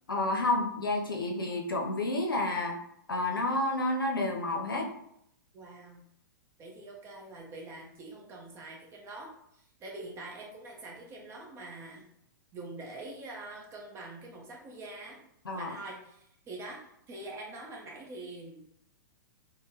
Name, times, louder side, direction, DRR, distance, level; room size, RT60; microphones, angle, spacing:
voice 1, 0.1-2.8 3.1-4.9 15.5-15.7, left 2 dB, 90° left, 1 dB, 0.5 m, -30 dB
voice 2, 5.5-6.0 6.6-12.1 12.5-15.2 15.6-18.7, right 2 dB, 25° right, -1 dB, 0.6 m, -45 dB
3.4 x 2.1 x 2.7 m, 0.73 s
hypercardioid pair, 110°, 11 cm